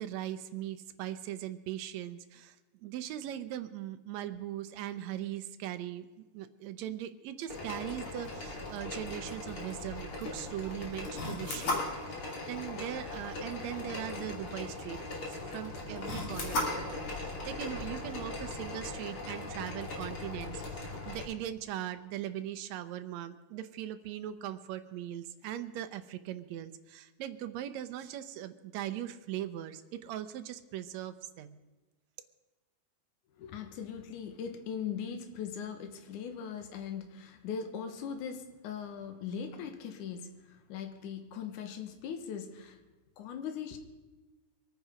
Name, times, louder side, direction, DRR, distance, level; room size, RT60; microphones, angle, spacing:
voice 1, 0.0-31.6, right 12 dB, 70° right, 9 dB, 1.9 m, -40 dB
sound 1, 7.5-21.2, left 2 dB, 45° left, 3.1 m, -38 dB
voice 2, 33.4-42.8 43.2-43.8, left 7 dB, 80° left, 7 dB, 2.7 m, -40 dB
23.5 x 9.4 x 5.0 m, 1.2 s
omnidirectional pair, 3.6 m